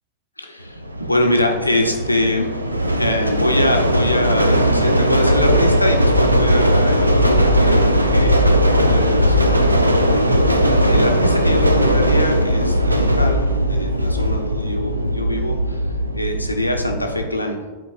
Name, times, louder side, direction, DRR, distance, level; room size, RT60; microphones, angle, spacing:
voice 1, 0.4-2.5 3.0-9.7 10.1-15.8 16.1-17.6, left 1 dB, 85° left, 3 dB, 0.8 m, -24 dB
sound 1, 0.8-17.3, equal, 85° right, 0.4 m, -18 dB
11.0 x 4.5 x 2.5 m, 1.3 s
figure-of-eight pair, 90°, 0 cm